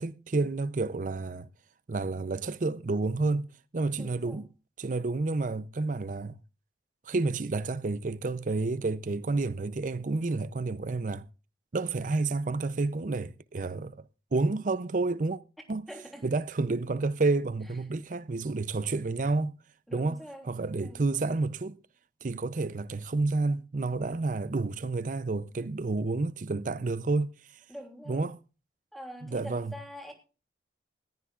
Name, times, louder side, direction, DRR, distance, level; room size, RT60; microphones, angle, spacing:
voice 1, 0.0-1.5 1.9-3.5 3.7-4.5 4.8-6.4 7.1-11.3 11.7-14.1 14.3-15.4 15.7-15.8 16.2-19.5 19.9-20.2 20.5-21.8 22.2-27.6 28.1-28.4 29.2-29.7, right 3 dB, 45° right, 0.5 m, -30 dB
voice 2, 3.9-4.4 15.9-16.3 19.9-21.0 27.7-28.2 28.9-30.1, equal, ahead, 3.0 m, -45 dB
20.0 x 14.5 x 2.4 m
head